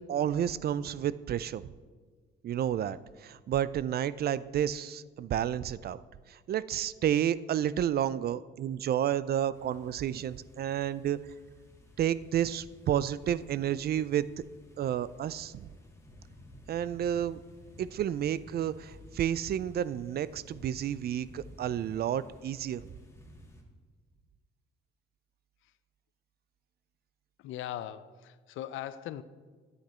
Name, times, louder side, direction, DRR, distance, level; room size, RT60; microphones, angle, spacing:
voice 1, 0.1-1.7 2.4-6.0 6.3-11.2 12.0-14.3 14.8-15.7 16.7-17.4 17.8-22.8, right 10 dB, 50° right, 17 dB, 0.4 m, -31 dB
sound 1, 9.5-23.6, equal, 15° left, 1.9 m, -54 dB
voice 2, 27.4-29.2, left 12 dB, 80° left, 15 dB, 0.5 m, -40 dB
10.5 x 8.2 x 4.3 m, 1.5 s
cardioid pair, 90°, 20 cm